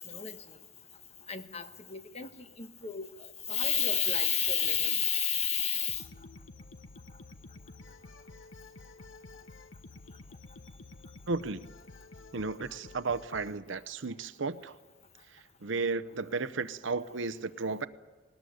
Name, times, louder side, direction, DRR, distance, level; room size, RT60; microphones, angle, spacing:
voice 1, 1.3-2.3 2.6-3.1 3.5-6.0, left 7 dB, 35° left, 1.2 m, -30 dB
sound 1, 5.9-13.6, left 3 dB, 70° left, 1.2 m, -50 dB
voice 2, 11.3-11.6 12.3-14.7 15.6-17.9, right 4 dB, 65° right, 0.8 m, -33 dB
20.0 x 19.0 x 9.5 m
head